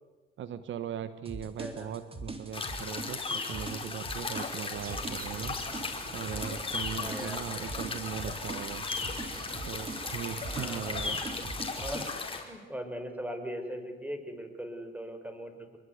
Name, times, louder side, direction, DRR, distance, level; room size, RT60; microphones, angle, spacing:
voice 1, 0.4-5.6 6.1-8.9 9.6-11.2, right 9 dB, 75° right, 12 dB, 1.4 m, -39 dB
sound 1, 1.2-12.2, right 2 dB, 30° right, 3.9 m, -42 dB
voice 2, 1.6-2.0 7.0-7.5 10.5-11.2 11.8-15.8, equal, 10° right, 7 dB, 5.5 m, -40 dB
sound 2, 2.5-12.4, left 4 dB, 25° left, 5.1 m, -36 dB
sound 3, 4.7-11.6, right 6 dB, 50° right, 1.8 m, -47 dB
27.0 x 23.0 x 9.6 m, 1.2 s
cardioid pair, 90°, 20 cm